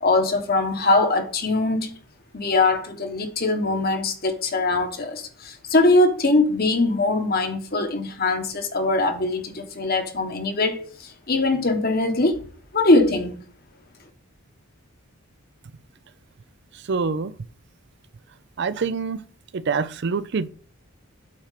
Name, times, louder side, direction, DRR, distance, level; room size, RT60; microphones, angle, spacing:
voice 1, 0.0-1.9 2.3-12.4 12.7-13.4, left 2 dB, 45° left, 1.3 m, -22 dB
voice 2, 16.7-17.3 18.6-19.2 19.5-20.5, right 5 dB, 55° right, 0.5 m, -25 dB
8.7 x 4.4 x 5.7 m
head